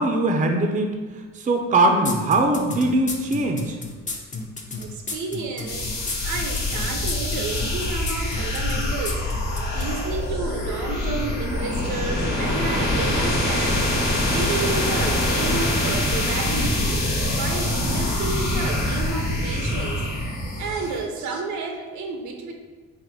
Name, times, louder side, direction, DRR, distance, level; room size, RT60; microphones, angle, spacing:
voice 1, 0.0-3.8, right 2 dB, 25° right, 4 dB, 0.4 m, -21 dB
sound 1, 2.0-9.9, left 3 dB, 25° left, 0.5 m, -32 dB
voice 2, 4.7-6.0 6.2-9.2 9.7-13.8 14.3-17.0 17.3-20.0 20.6-22.5, right 4 dB, 75° right, 3 dB, 0.6 m, -31 dB
sound 2, 5.7-21.0, left 1 dB, 90° left, 1.0 m, -24 dB
3.9 x 2.1 x 4.4 m, 1.4 s
cardioid pair, 90°, 30 cm